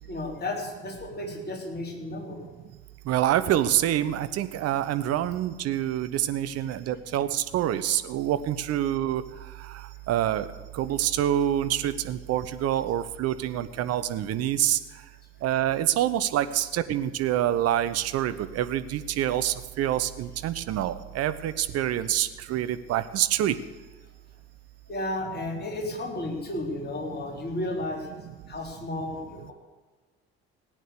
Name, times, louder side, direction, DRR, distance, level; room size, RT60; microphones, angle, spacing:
voice 1, 0.1-2.5 24.9-28.1 28.5-29.5, left 2 dB, 30° left, 0 dB, 3.8 m, -33 dB
voice 2, 3.1-9.2 10.1-10.4 10.8-14.8 15.4-23.5, right 12 dB, 50° right, 12 dB, 0.9 m, -26 dB
18.0 x 8.9 x 6.8 m, 1.3 s
figure-of-eight pair, 50°, 32 cm